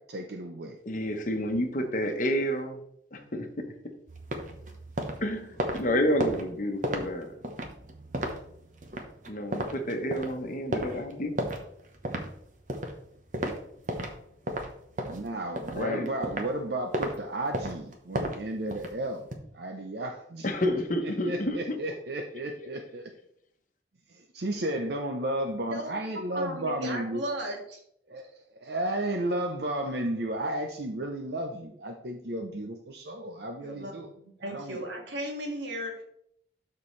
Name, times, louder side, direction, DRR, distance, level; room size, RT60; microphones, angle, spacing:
voice 1, 0.0-0.8 15.0-19.3 19.5-20.5 21.0-23.1 24.1-27.2 28.1-34.1 34.4-34.8, right 1 dB, 60° right, 3 dB, 0.7 m, -33 dB
voice 2, 0.9-2.8 3.1-3.6 5.2-7.3 9.3-11.4 15.7-16.1 20.4-21.8, equal, 45° left, 5 dB, 1.1 m, -29 dB
sound 1, 4.1-14.2 14.5-16.6 16.9-17.1 17.5-19.4, right 1 dB, 45° right, 1.0 m, -34 dB
voice 3, 26.3-27.8 33.6-36.0, right 1 dB, 75° right, 0 dB, 2.1 m, -36 dB
12.5 x 4.4 x 3.2 m, 0.72 s
head